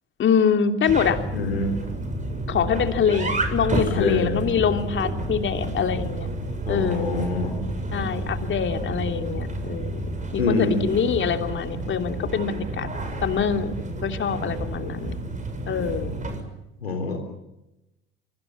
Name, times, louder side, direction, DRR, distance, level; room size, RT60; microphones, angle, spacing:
voice 1, 0.2-1.2 2.5-6.3 6.7-7.2 7.9-10.0 10.3-12.9 13.2-13.7 14.0-15.1 15.7-16.2, left 7 dB, 40° left, 6 dB, 2.9 m, -24 dB
sound 1, 0.9-16.4, right 2 dB, 25° right, 7.1 m, -30 dB
voice 2, 1.3-1.7 4.0-4.4 6.7-7.5 10.4-10.8 16.8-17.2, left 3 dB, 85° left, 2 dB, 3.9 m, -25 dB
25.5 x 25.0 x 7.4 m, 0.91 s
figure-of-eight pair, 65°, 30 cm